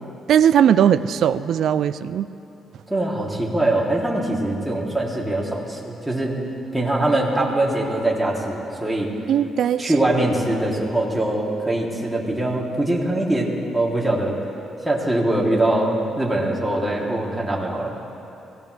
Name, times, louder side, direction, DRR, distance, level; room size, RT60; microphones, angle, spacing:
voice 1, 0.3-2.3 9.3-9.9, right 9 dB, 70° right, 13 dB, 0.5 m, -18 dB
voice 2, 2.9-6.4 6.7-9.1 9.8-14.4 14.8-17.9, right 1 dB, 5° right, -4 dB, 3.2 m, -22 dB
23.5 x 18.0 x 3.4 m, 2.9 s
cardioid pair, 90°, 0 cm